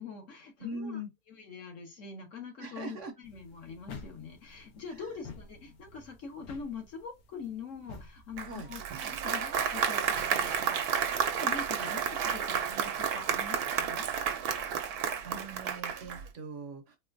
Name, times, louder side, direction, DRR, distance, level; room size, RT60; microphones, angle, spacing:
voice 1, 0.0-1.0 1.3-14.1, left 5 dB, 60° left, 1.3 m, -44 dB
voice 2, 0.6-1.1 2.6-3.1 8.5-8.7 14.9-17.0, right 1 dB, 60° right, 0.9 m, -41 dB
sound 1, 3.2-8.6, left 4 dB, 85° left, 1.3 m, -50 dB
Applause, 8.4-16.3, right 8 dB, 85° right, 1.1 m, -31 dB
4.2 x 2.2 x 2.5 m
omnidirectional pair, 1.6 m